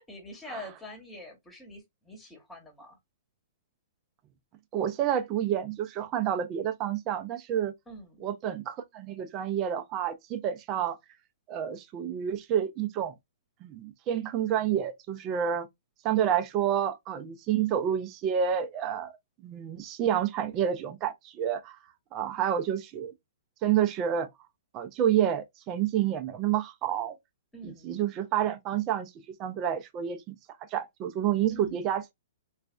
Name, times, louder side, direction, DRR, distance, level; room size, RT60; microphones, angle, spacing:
voice 1, 0.0-3.0 7.9-8.2 27.5-28.0 31.5-31.8, left 1 dB, 10° left, 1.2 m, -45 dB
voice 2, 4.7-7.7 8.2-11.0 11.5-13.1 13.6-15.7 16.0-19.1 19.4-21.8 22.1-23.1 23.6-24.3 24.7-27.2 27.6-29.1 29.4-30.2 30.7-32.1, right 9 dB, 30° right, 0.6 m, -29 dB
3.2 x 2.3 x 2.4 m
hypercardioid pair, 130°, 0 cm